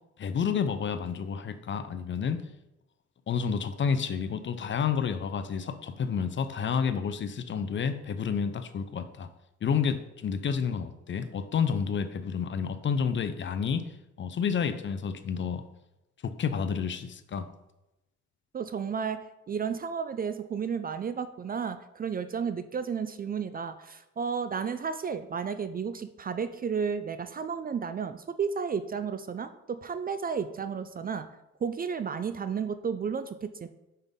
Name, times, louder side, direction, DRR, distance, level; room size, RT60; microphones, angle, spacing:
voice 1, 0.2-2.4 3.3-9.3 9.6-13.9 14.2-15.6 16.2-17.5, left 6 dB, 40° left, 11 dB, 0.5 m, -30 dB
voice 2, 18.5-19.2 19.5-31.3 31.6-33.7, right 6 dB, 30° right, 11 dB, 0.4 m, -32 dB
5.6 x 5.4 x 3.6 m, 0.95 s
cardioid pair, 90°, 30 cm